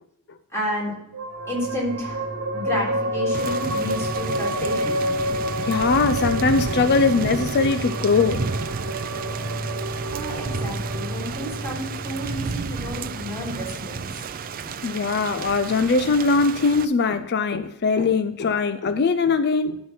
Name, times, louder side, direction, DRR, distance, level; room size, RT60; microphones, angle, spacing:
voice 1, 0.5-0.9 1.5-2.3 2.5-5.1 10.1-14.1, left 1 dB, 10° left, -5 dB, 3.6 m, -31 dB
sound 1, 1.1-14.0, equal, 60° right, 1.3 m, -29 dB
Thunder / Rain, 3.3-16.8, right 5 dB, 40° right, 0.4 m, -32 dB
voice 2, 5.6-8.4 14.8-19.8, left 4 dB, 50° left, 11 dB, 0.4 m, -21 dB
12.0 x 4.5 x 5.8 m, 0.85 s
head